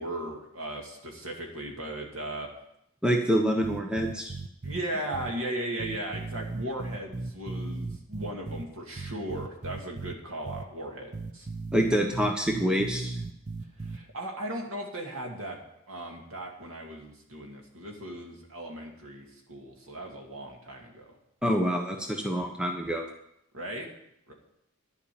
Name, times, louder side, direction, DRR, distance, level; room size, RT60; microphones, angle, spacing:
voice 1, 0.0-2.5 4.6-11.5 13.8-15.6 15.9-21.1 23.5-23.9 24.3-24.4, right 1 dB, 70° right, 1 dB, 2.5 m, -37 dB
voice 2, 3.0-4.3 11.7-13.2 21.4-23.0, equal, 5° right, 2 dB, 1.0 m, -26 dB
sound 1, 3.6-4.8 5.1-5.3 5.8-8.6 9.0-10.1 10.5-10.6 11.1-14.0, right 3 dB, 35° right, 0.5 m, -36 dB
11.5 x 5.7 x 8.7 m, 0.77 s
head